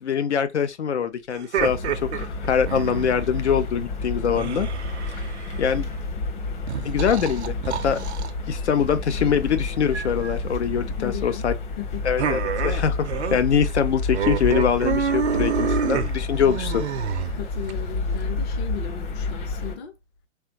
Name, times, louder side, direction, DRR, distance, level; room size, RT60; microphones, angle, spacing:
voice 1, 0.0-4.7 5.6-5.9 6.8-8.0 8.5-11.5 12.0-16.8, left 7 dB, 70° left, 0.6 m, -23 dB
sound 1, 1.3-3.3 4.4-5.8 6.7-8.3 9.9-10.4 12.2-13.4 13.7-13.8 14.1-17.7, right 8 dB, 65° right, 0.6 m, -28 dB
sound 2, 1.6-19.8, left 3 dB, 40° left, 1.3 m, -30 dB
voice 2, 11.0-11.5 11.8-12.0 17.3-19.9, left 10 dB, 20° left, 0.5 m, -35 dB
3.5 x 3.2 x 2.9 m
figure-of-eight pair, 125°, 36 cm